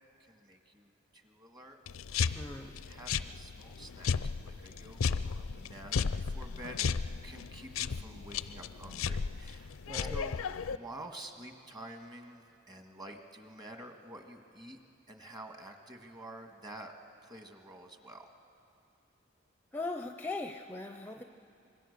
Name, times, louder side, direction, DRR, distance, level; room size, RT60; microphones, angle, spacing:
voice 1, 0.2-1.8 2.2-2.5 2.9-6.9 7.2-9.8 10.1-10.4 10.7-14.8 15.1-16.9 17.2-18.3, right 1 dB, 20° right, 4 dB, 1.7 m, -49 dB
sound 1, 1.9-10.8, left 5 dB, 85° left, 0.5 m, -35 dB
voice 2, 2.3-2.7 9.9-10.1 19.7-21.2, left 2 dB, 10° left, 6 dB, 0.6 m, -39 dB
26.0 x 23.5 x 6.7 m, 2.6 s
head